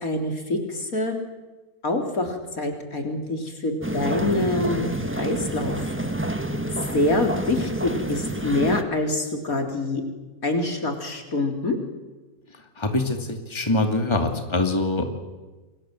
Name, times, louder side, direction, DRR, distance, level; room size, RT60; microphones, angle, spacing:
voice 1, 0.0-1.2 1.8-5.8 6.9-10.0 10.4-11.8, left 2 dB, 65° left, 3 dB, 4.1 m, -25 dB
sound 1, 3.8-8.8, right 1 dB, 10° right, 1.4 m, -28 dB
voice 2, 12.8-15.1, left 2 dB, 20° left, 4 dB, 2.6 m, -24 dB
29.0 x 24.0 x 7.8 m, 1.2 s
omnidirectional pair, 1.6 m